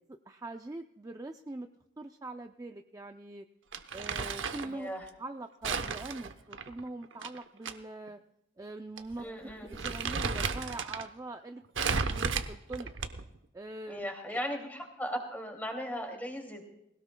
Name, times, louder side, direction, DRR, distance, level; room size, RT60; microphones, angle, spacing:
voice 1, 0.1-1.7 2.0-3.5 3.9-4.9 5.2-8.2 8.6-11.6 11.9-12.9 13.5-14.4, right 2 dB, 15° right, 6 dB, 0.4 m, -43 dB
Crumpling crinkling, 3.7-4.7 5.6-7.7 8.1-8.2 9.0-9.2 9.5-11.1 11.8-13.4, right 5 dB, 70° right, 0.8 m, -33 dB
voice 2, 4.6-5.0 9.2-9.7 13.9-16.6, equal, 10° left, 2 dB, 2.4 m, -37 dB
20.5 x 18.0 x 2.2 m, 0.85 s
head